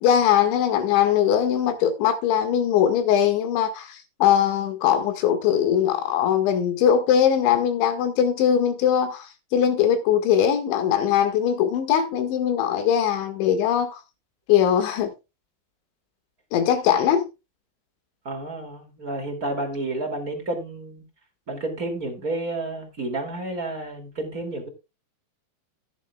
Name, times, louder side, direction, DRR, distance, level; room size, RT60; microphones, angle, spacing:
voice 1, 0.0-14.0 14.5-15.1 16.5-17.3, left 9 dB, 75° left, 4.0 m, -21 dB
voice 2, 18.2-21.0 21.5-24.7, right 2 dB, 30° right, 1.8 m, -30 dB
14.0 x 10.5 x 2.3 m
omnidirectional pair, 5.5 m